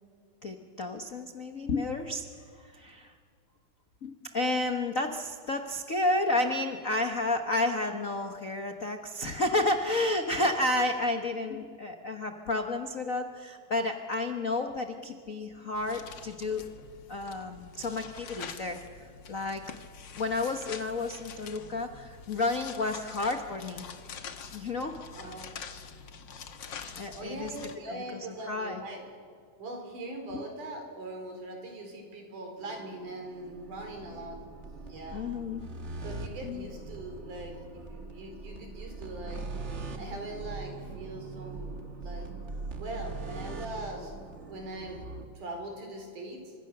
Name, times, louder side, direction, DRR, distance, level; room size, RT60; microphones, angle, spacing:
voice 1, 0.4-2.2 2.6-3.1 4.0-16.6 17.1-19.6 20.2-23.9 24.5-25.3 26.9-27.5 28.5-28.8 35.1-35.6 36.4-36.6, left 2 dB, 75° left, 5 dB, 0.7 m, -31 dB
sound 1, 15.7-27.8, left 6 dB, 50° left, 1.4 m, -45 dB
voice 2, 25.1-25.5 27.1-29.0 29.6-34.4 34.9-35.2 36.0-39.4 40.0-42.3 42.8-44.1 44.5-45.0 45.3-46.5, right 1 dB, 80° right, 3 dB, 5.8 m, -41 dB
sound 2, 32.6-45.2, right 3 dB, 35° right, 1.2 m, -41 dB
29.5 x 25.5 x 6.8 m, 2.1 s
omnidirectional pair, 3.6 m